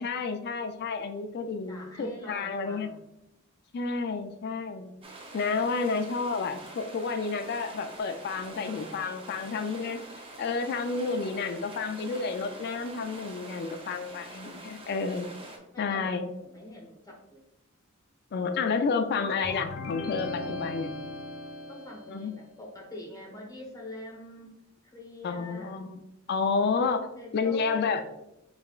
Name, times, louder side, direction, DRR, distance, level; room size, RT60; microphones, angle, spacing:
voice 1, 0.0-2.9 3.7-4.9 5.3-10.0 10.4-15.3 15.8-16.3 18.3-20.9 22.1-22.3 25.2-26.0 26.3-27.1 27.3-28.0, left 4 dB, 50° left, 8 dB, 0.3 m, -30 dB
voice 2, 1.7-3.1 15.7-17.4 21.7-24.5 24.8-25.8 27.2-28.1, left 1 dB, 20° left, 0 dB, 1.0 m, -44 dB
sound 1, 5.0-15.6, right 2 dB, 25° right, 0.7 m, -45 dB
sound 2, 19.4-22.2, left 2 dB, 75° left, 0.8 m, -38 dB
5.5 x 3.3 x 2.4 m, 0.86 s
head